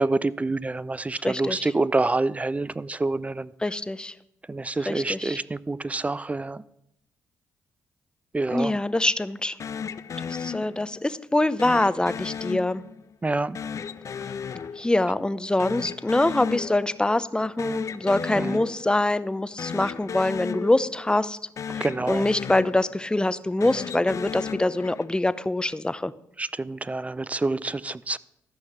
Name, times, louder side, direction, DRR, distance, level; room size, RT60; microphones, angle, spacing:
voice 1, 0.0-3.5 4.5-6.6 8.3-8.7 13.2-13.6 18.4-18.6 21.8-22.2 26.4-28.2, right 2 dB, 20° right, 19 dB, 0.5 m, -27 dB
voice 2, 1.2-1.7 3.6-4.1 4.9-5.4 8.5-9.6 10.3-12.8 14.8-21.4 21.7-26.1, left 2 dB, 15° left, 15 dB, 0.7 m, -24 dB
sound 1, 9.6-11.1 11.6-13.1 13.5-15.3 15.6-17.1 17.4-19.1 19.5-21.3 21.6-23.1 23.5-25.3, left 7 dB, 55° left, 0.5 m, -35 dB
13.5 x 5.7 x 7.9 m, 0.79 s
supercardioid pair, 55°, 6 cm